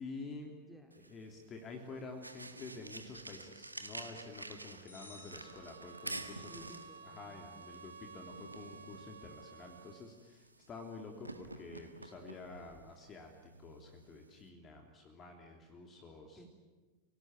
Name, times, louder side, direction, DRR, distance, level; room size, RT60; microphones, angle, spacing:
voice 1, 0.0-0.5 1.1-6.7 7.0-16.5, left 3 dB, 25° left, 3 dB, 3.1 m, -49 dB
voice 2, 0.7-1.0 6.4-7.4 16.3-16.5, equal, 5° left, 4 dB, 4.3 m, -56 dB
sound 1, 0.9-14.5, right 2 dB, 85° right, 1.7 m, -50 dB
sound 2, 4.9-6.4, left 2 dB, 75° left, 6.6 m, -57 dB
sound 3, 5.4-10.2, right 5 dB, 60° right, 1.7 m, -54 dB
29.5 x 18.5 x 9.2 m, 1.3 s
figure-of-eight pair, 90°, 0 cm